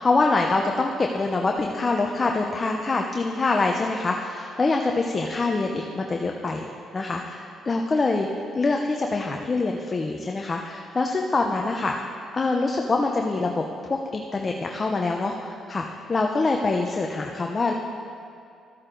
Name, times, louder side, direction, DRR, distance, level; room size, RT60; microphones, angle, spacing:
voice 1, 0.0-6.7 6.9-8.3 8.5-12.1 12.3-13.6 13.9-17.7, left 3 dB, 30° left, 2 dB, 0.7 m, -25 dB
13.5 x 8.7 x 3.9 m, 2.4 s
cardioid pair, 90°, 0 cm